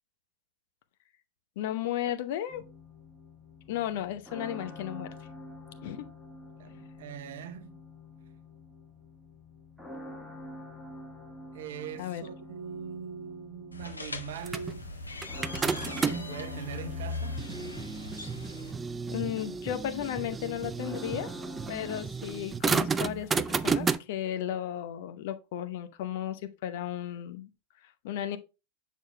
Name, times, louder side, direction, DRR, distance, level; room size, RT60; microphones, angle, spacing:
voice 1, 1.6-2.6 3.7-5.1 5.8-6.1 12.0-12.2 19.1-21.3 21.7-27.5 28.0-28.4, left 11 dB, 50° left, 0.8 m, -34 dB
sound 1, 2.5-22.0, left 1 dB, ahead, 1.2 m, -47 dB
voice 2, 6.6-7.8 11.5-14.9 15.8-17.4, right 8 dB, 55° right, 0.7 m, -41 dB
sound 2, 13.7-18.7, left 3 dB, 80° left, 0.9 m, -39 dB
sound 3, 14.5-16.4 17.0-24.0, right 5 dB, 15° right, 0.3 m, -32 dB
7.0 x 6.4 x 2.2 m
figure-of-eight pair, 90°, 0 cm